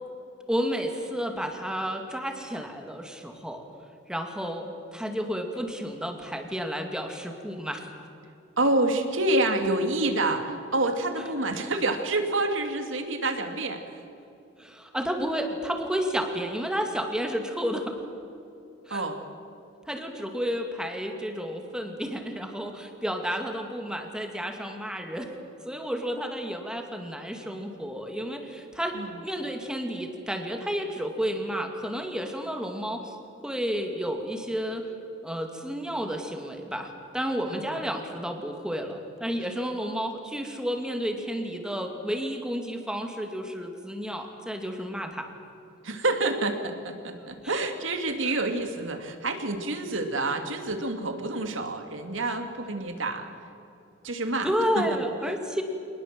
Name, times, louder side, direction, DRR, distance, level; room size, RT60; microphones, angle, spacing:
voice 1, 0.5-3.6 4.1-7.9 14.6-17.9 18.9-19.0 19.9-25.3 25.6-29.0 29.2-33.2 33.4-34.8 35.2-45.3 47.4-47.5 48.2-48.3 54.4-55.6, equal, 5° right, 4 dB, 2.4 m, -31 dB
voice 2, 8.6-14.0 18.9-19.2 28.9-29.2 37.5-37.6 45.8-53.3 54.0-54.5 54.7-54.9, right 2 dB, 75° right, 5 dB, 2.7 m, -28 dB
26.5 x 20.0 x 7.7 m, 2.7 s
head